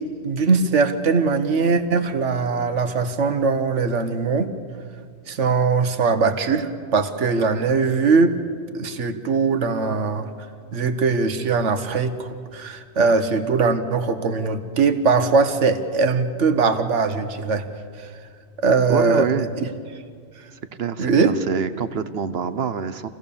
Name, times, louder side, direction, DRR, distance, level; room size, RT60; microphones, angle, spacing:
voice 1, 0.2-4.5 5.3-8.4 8.7-10.3 10.7-17.7 18.0-18.1 18.6-19.3 21.0-21.3, right 4 dB, 80° right, 9 dB, 1.5 m, -21 dB
voice 2, 18.9-19.5 20.7-23.1, right 6 dB, 60° right, 12 dB, 1.1 m, -26 dB
27.5 x 16.5 x 7.0 m, 2.1 s
omnidirectional pair, 1.2 m